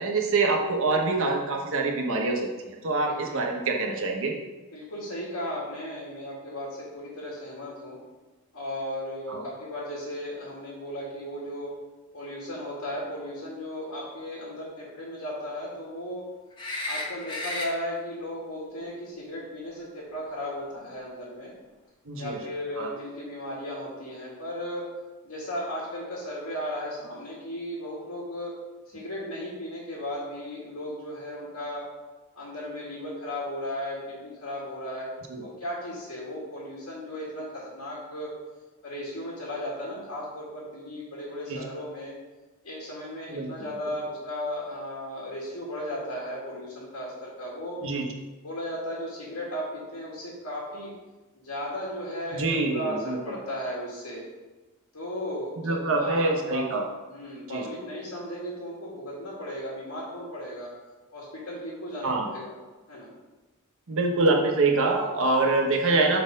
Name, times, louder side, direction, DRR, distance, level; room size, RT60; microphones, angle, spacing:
voice 1, 0.0-4.3 9.3-9.4 22.1-22.4 22.8-22.9 35.3-35.4 41.5-41.6 43.3-43.5 47.8-48.1 52.3-53.2 55.6-56.9 57.5-57.6 62.0-62.3 63.9-66.2, right 3 dB, 65° right, 1 dB, 1.1 m, -25 dB
voice 2, 3.0-3.4 4.7-8.0 8.5-11.7 12.1-16.3 16.8-21.5 22.2-24.9 25.2-28.5 28.9-31.9 32.4-35.1 35.4-38.3 38.8-42.1 42.6-47.8 48.4-50.9 51.4-54.2 54.9-56.7 57.1-60.7 61.1-62.6 62.9-63.1, equal, 85° left, -5 dB, 2.0 m, -35 dB
sound 1, 16.6-17.7 20.6-20.7, left 2 dB, 20° left, 1.1 m, -33 dB
6.9 x 4.3 x 5.2 m, 1.2 s
head